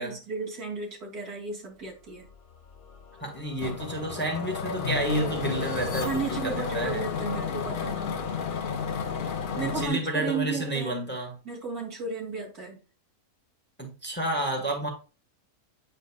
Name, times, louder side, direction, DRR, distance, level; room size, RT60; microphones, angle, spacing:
voice 1, 0.0-2.3 6.0-8.1 9.6-10.9 11.4-12.8, right 4 dB, 75° right, 3.1 m, -34 dB
sound 1, 2.2-7.4, left 6 dB, 90° left, 1.5 m, -42 dB
voice 2, 3.2-7.0 9.6-11.4 13.8-14.9, right 1 dB, 5° left, 1.5 m, -30 dB
sound 2, 3.6-9.9, left 6 dB, 50° left, 0.6 m, -32 dB
9.1 x 5.1 x 2.4 m
omnidirectional pair, 1.6 m